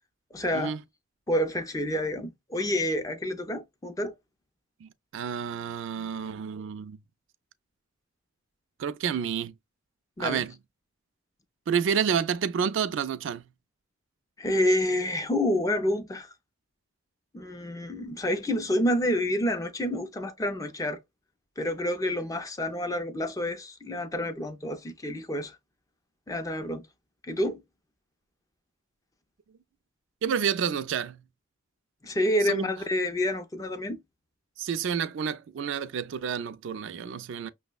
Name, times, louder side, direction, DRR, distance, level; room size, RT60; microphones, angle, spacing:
voice 1, 0.3-0.8 1.3-4.2 10.2-10.4 14.4-16.3 17.3-21.0 21.6-25.6 26.3-26.8 27.3-27.6 32.0-34.0, left 1 dB, 15° left, 0.4 m, -28 dB
voice 2, 4.8-7.0 8.8-9.5 10.2-10.5 11.7-13.5 30.2-31.2 32.4-32.7 34.6-37.5, right 7 dB, 60° right, 0.3 m, -29 dB
5.9 x 2.0 x 2.2 m
head